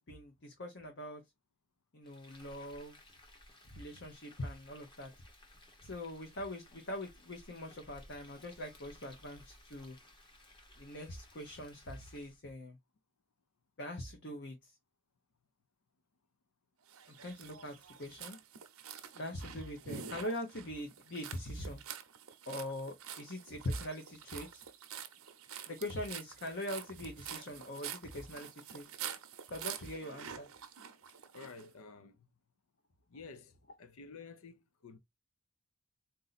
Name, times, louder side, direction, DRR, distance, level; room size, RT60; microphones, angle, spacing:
voice 1, 0.1-1.2 1.9-3.0 3.7-5.1 5.8-10.0 10.8-12.8 13.8-14.7 17.1-18.4 19.1-21.8 22.5-24.6 25.7-28.9 29.5-30.5, left 1 dB, 50° left, 0.9 m, -42 dB
Frying (food), 2.0-12.4, left 1 dB, 20° left, 0.9 m, -59 dB
sound 1, 16.9-31.7, right 8 dB, 75° right, 0.7 m, -47 dB
voice 2, 31.3-32.3 33.1-35.0, left 4 dB, 75° left, 0.6 m, -51 dB
3.9 x 2.7 x 4.1 m
head